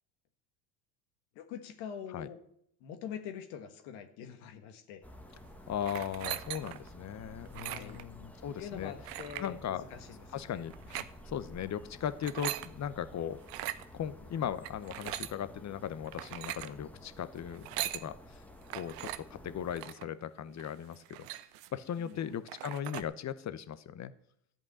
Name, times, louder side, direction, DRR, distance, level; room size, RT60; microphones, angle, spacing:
voice 1, 1.3-2.4 2.8-5.0 7.5-8.0 8.6-11.0 22.0-22.2, left 8 dB, 70° left, 6 dB, 1.4 m, -45 dB
sound 1, 5.0-19.8, left 1 dB, 5° left, 1.4 m, -52 dB
voice 2, 5.7-8.9 9.4-9.8 10.3-10.7 11.2-13.4 13.9-18.4 18.7-21.3 21.7-24.1, left 9 dB, 35° left, 14 dB, 0.9 m, -38 dB
sound 2, 5.8-6.9 7.5-8.0 9.1-9.5 10.7-11.1 12.1-12.7 13.4-13.8 14.6-15.4 16.1-16.7 17.5-18.1 18.7-19.2 19.7-20.1 20.6-20.7 20.9-21.8 22.2-22.3 22.5-23.0, right 15 dB, 80° right, 0.7 m, -39 dB
12.0 x 5.4 x 8.5 m, 0.72 s
hypercardioid pair, 80°, 47 cm